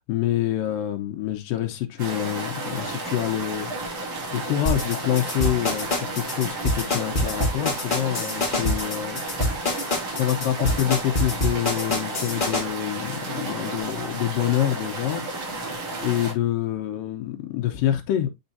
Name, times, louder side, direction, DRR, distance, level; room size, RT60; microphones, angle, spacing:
voice 1, 0.1-15.2 16.0-18.3, left 12 dB, 85° left, 2.6 m, -27 dB
sound 1, 2.0-16.3, right 2 dB, 50° right, 3.2 m, -32 dB
sound 2, 4.6-12.6, left 1 dB, 60° left, 0.5 m, -25 dB
8.9 x 4.4 x 2.7 m
omnidirectional pair, 3.9 m